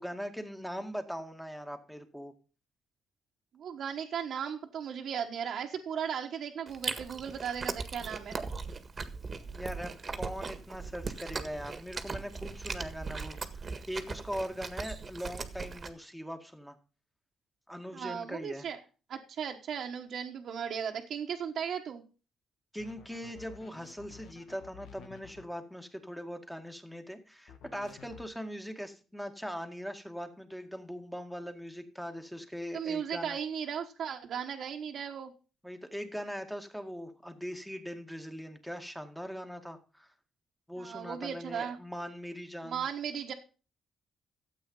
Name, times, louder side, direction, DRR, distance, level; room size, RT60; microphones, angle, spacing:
voice 1, 0.0-2.3 9.5-16.8 17.7-18.7 22.7-33.4 35.6-40.1 40.7-42.9, equal, ahead, 6 dB, 2.0 m, -41 dB
voice 2, 3.5-8.4 17.9-18.8 19.1-22.0 32.7-35.3 40.8-41.8 42.6-43.3, right 8 dB, 65° right, 0 dB, 1.4 m, -36 dB
Chewing mastication, 6.7-15.9, right 4 dB, 35° right, 1.6 m, -39 dB
sound 1, 22.8-25.5 27.5-28.3, left 7 dB, 75° left, 1.9 m, -52 dB
12.5 x 8.3 x 5.5 m, 0.36 s
cardioid pair, 90°, 0 cm